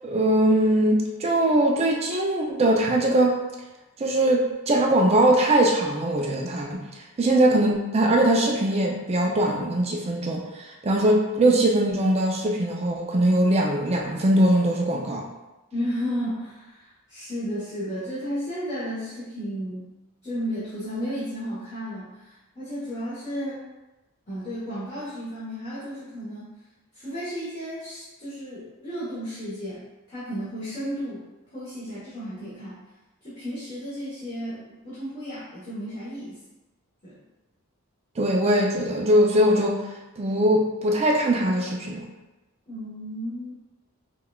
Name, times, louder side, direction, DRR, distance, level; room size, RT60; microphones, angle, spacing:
voice 1, 0.0-3.4 4.0-6.8 7.2-15.2 38.2-39.8 40.2-42.0, right 1 dB, 30° right, 0 dB, 0.4 m, -21 dB
voice 2, 15.7-19.9 20.2-23.6 24.3-26.5 26.9-31.2 31.5-32.8 33.2-36.4 37.0-37.2 42.7-43.5, equal, 30° left, -11 dB, 1.0 m, -33 dB
5.4 x 2.3 x 2.3 m, 1.0 s
head